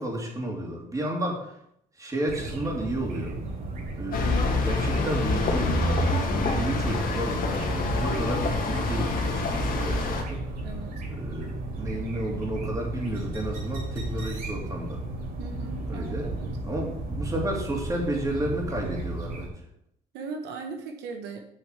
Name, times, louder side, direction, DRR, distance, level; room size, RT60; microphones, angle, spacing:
voice 1, 0.0-1.5 2.0-3.4 4.0-5.8 6.1-10.4 11.1-15.0 15.9-16.3 16.6-19.5, right 1 dB, 20° right, -1 dB, 2.9 m, -32 dB
sound 1, 2.3-19.5, right 2 dB, 60° right, 3.4 m, -34 dB
sound 2, 4.1-10.2, left 2 dB, 55° left, 2.1 m, -26 dB
voice 2, 10.6-10.9 15.4-16.5 20.1-21.4, right 4 dB, 85° right, 4 dB, 1.3 m, -38 dB
8.1 x 6.4 x 5.9 m, 0.75 s
cardioid pair, 110°, 17 cm